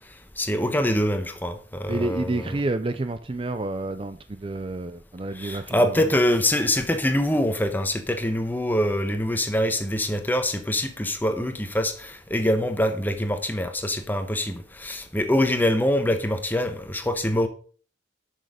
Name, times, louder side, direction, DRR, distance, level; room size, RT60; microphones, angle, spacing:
voice 1, 0.4-2.6 5.3-17.5, left 1 dB, 10° left, 1.2 m, -24 dB
voice 2, 1.9-6.1, right 2 dB, 30° right, 0.5 m, -29 dB
11.0 x 6.4 x 5.0 m
head